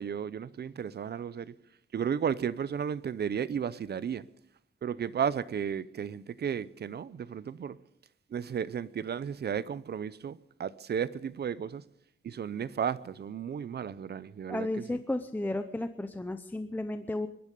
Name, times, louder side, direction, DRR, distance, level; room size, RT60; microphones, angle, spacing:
voice 1, 0.0-1.6 1.9-4.2 4.8-7.8 8.3-11.8 12.2-15.0, right 8 dB, 50° right, 0.6 m, -34 dB
voice 2, 14.5-17.3, left 1 dB, 10° left, 0.6 m, -33 dB
23.0 x 12.0 x 5.3 m
wide cardioid pair, 150°, 21 cm